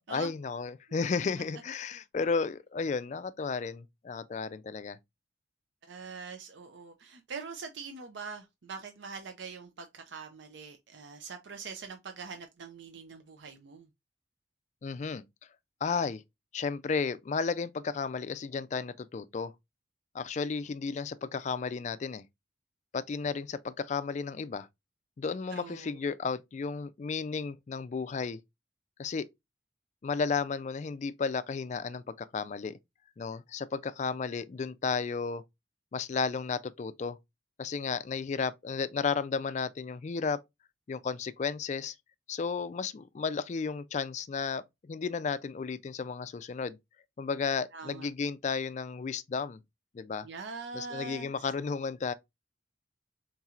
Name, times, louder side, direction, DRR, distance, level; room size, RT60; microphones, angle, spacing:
voice 1, 0.1-5.0 14.8-15.2 15.8-16.2 16.5-19.5 20.1-22.2 22.9-24.7 25.2-28.4 29.0-29.3 30.0-32.8 33.2-35.4 35.9-37.2 37.6-40.4 40.9-41.9 42.3-46.8 47.2-49.6 49.9-50.3 50.7-52.1, left 5 dB, 40° left, 0.3 m, -33 dB
voice 2, 5.9-13.9 25.5-26.0 47.7-48.1 50.2-51.3, right 5 dB, 70° right, 0.5 m, -43 dB
4.3 x 3.9 x 2.4 m
head